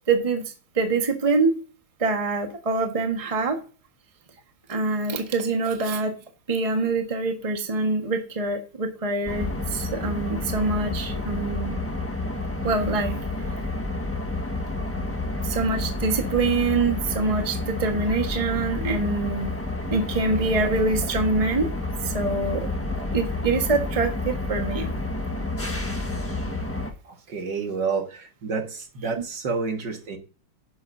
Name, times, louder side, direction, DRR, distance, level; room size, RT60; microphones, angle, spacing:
voice 1, 0.1-1.6 2.0-3.6 4.7-6.1 6.5-11.7 12.6-13.2 15.4-19.5 19.9-21.7 22.0-22.7 23.0-24.9 29.2-29.3, right 3 dB, 20° right, 4 dB, 1.3 m, -25 dB
sound 1, 9.3-26.9, left 2 dB, 10° left, 1.1 m, -29 dB
voice 2, 27.3-30.2, right 5 dB, 60° right, 4 dB, 2.3 m, -29 dB
12.0 x 10.5 x 2.7 m, 0.38 s
omnidirectional pair, 2.2 m